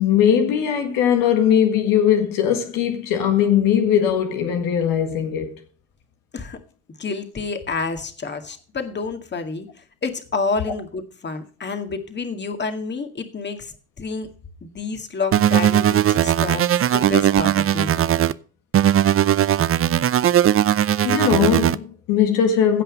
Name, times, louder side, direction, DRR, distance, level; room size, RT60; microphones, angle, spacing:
voice 1, 0.0-5.5 21.0-22.8, left 9 dB, 75° left, 1.8 m, -19 dB
voice 2, 7.0-9.7 10.0-14.3 14.6-18.0, left 4 dB, 30° left, 2.1 m, -29 dB
sound 1, 15.3-18.3 18.7-21.8, right 10 dB, 40° right, 0.6 m, -18 dB
16.0 x 5.6 x 5.2 m
supercardioid pair, 70°, 33 cm